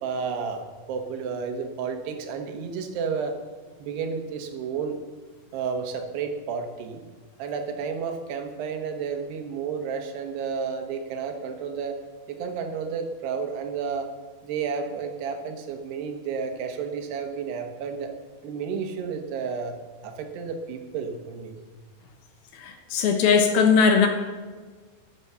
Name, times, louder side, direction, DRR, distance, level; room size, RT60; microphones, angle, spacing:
voice 1, 0.0-3.3 3.8-5.0 5.5-7.0 7.4-12.0 12.3-14.1 14.4-18.1 18.4-19.8 20.0-21.6, right 6 dB, 80° right, 5 dB, 3.3 m, -31 dB
voice 2, 22.6-24.1, left 5 dB, 70° left, 5 dB, 2.9 m, -19 dB
12.0 x 9.8 x 6.8 m, 1.4 s
omnidirectional pair, 4.8 m